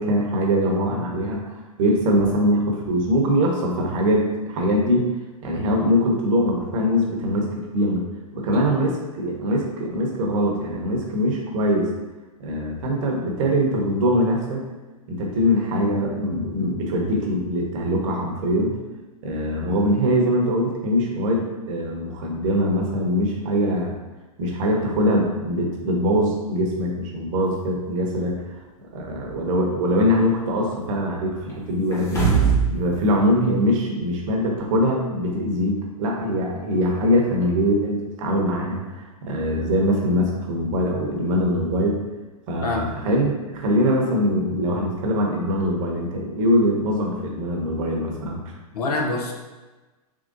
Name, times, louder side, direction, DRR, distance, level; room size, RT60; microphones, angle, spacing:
voice 1, 0.0-5.1 5.4-8.0 8.3-11.9 12.4-14.6 15.1-18.8 19.2-24.0 24.4-28.4 28.9-32.3 32.7-42.0 42.5-48.5, equal, 55° right, 0 dB, 0.9 m, -22 dB
sound 1, 31.9-32.8 33.1-33.2, right 6 dB, 15° left, 1.1 m, -19 dB
voice 2, 42.6-42.9 48.7-49.3, left 2 dB, 75° left, 1 dB, 0.7 m, -25 dB
3.8 x 3.1 x 2.6 m, 1.2 s
hypercardioid pair, 110°, 20 cm